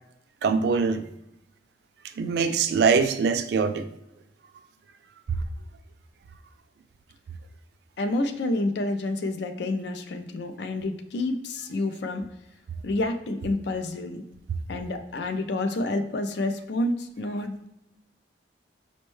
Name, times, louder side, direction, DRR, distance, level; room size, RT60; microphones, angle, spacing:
voice 1, 0.4-1.0 2.2-3.9, right 5 dB, 65° right, 0.3 m, -23 dB
voice 2, 8.0-12.2 12.8-14.2 14.7-17.6, left 2 dB, 65° left, 0.4 m, -29 dB
5.1 x 2.2 x 3.1 m
head